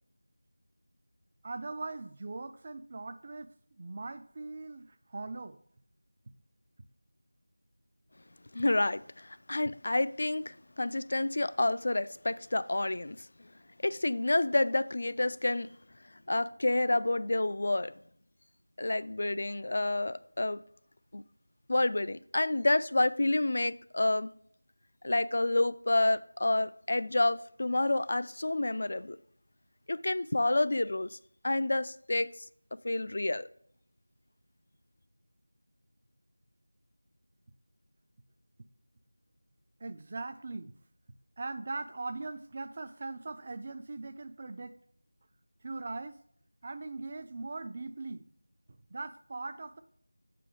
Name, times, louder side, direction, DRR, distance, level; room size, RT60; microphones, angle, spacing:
voice 1, 1.4-3.5 3.8-5.6 39.8-40.7 41.4-44.8 45.6-46.2 46.6-48.2 48.9-49.8, right 3 dB, 30° right, 0.4 m, -40 dB
voice 2, 8.5-13.5 13.8-15.7 16.3-17.9 18.8-20.6 21.1-21.2 21.7-24.3 25.0-29.2 29.9-31.2 31.4-32.5 32.8-33.5, left 2 dB, 45° left, 0.3 m, -29 dB
7.5 x 5.5 x 3.7 m
figure-of-eight pair, 170°, 0 cm